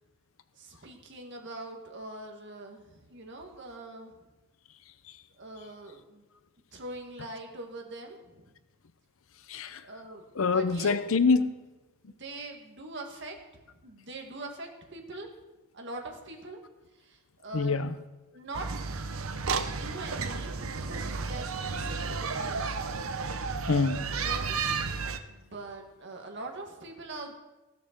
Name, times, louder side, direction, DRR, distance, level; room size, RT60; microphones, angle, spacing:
voice 1, 0.5-4.3 5.4-6.2 6.7-8.5 9.8-11.0 12.1-13.4 13.6-15.3 15.7-16.6 16.9-17.8 18.3-19.0 19.6-22.7 24.1-24.8 25.3-27.3, right 2 dB, 55° right, 1.9 m, -43 dB
voice 2, 9.5-9.8 10.4-11.5 17.5-17.9 23.7-24.1, left 4 dB, 75° left, 0.7 m, -25 dB
sound 1, 18.5-25.2, right 4 dB, 85° right, 0.8 m, -32 dB
15.5 x 6.6 x 6.7 m
head